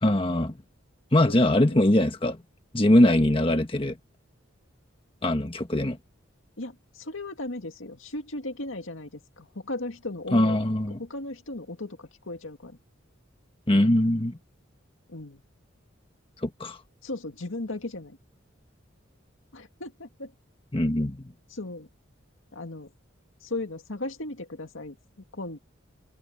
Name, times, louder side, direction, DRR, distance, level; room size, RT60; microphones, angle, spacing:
voice 1, 0.0-0.5 1.1-2.4 2.7-4.0 5.2-6.0 10.3-11.0 13.7-14.4 16.4-16.8 20.7-21.3, left 1 dB, 25° left, 1.5 m, -22 dB
voice 2, 1.3-1.6 6.6-10.6 11.0-12.8 15.1-15.4 17.0-18.2 19.5-20.3 21.5-21.9 22.5-22.9 23.4-25.0 25.3-25.6, left 2 dB, 75° left, 2.1 m, -36 dB
open air
head